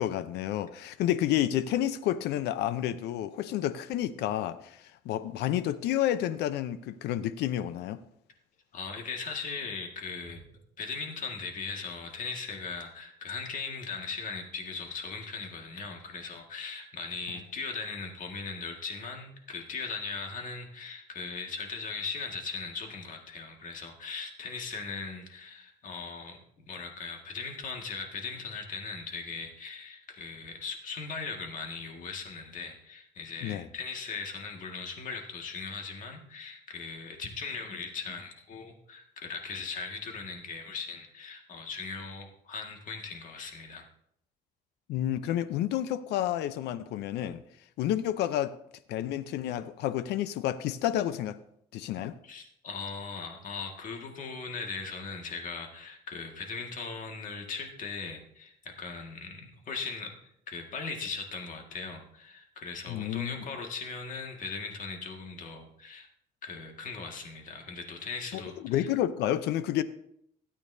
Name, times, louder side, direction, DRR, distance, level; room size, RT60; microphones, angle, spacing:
voice 1, 0.0-8.0 33.4-33.7 44.9-47.4 47.8-48.5 48.9-51.4 51.7-52.1 62.9-63.5 68.3-69.8, left 12 dB, 80° left, 14 dB, 0.7 m, -30 dB
voice 2, 8.7-10.4 10.8-43.8 52.2-60.2 60.5-66.1 66.4-68.9, left 4 dB, 50° left, 2 dB, 1.9 m, -39 dB
16.5 x 8.7 x 2.7 m, 0.73 s
cardioid pair, 110°, 17 cm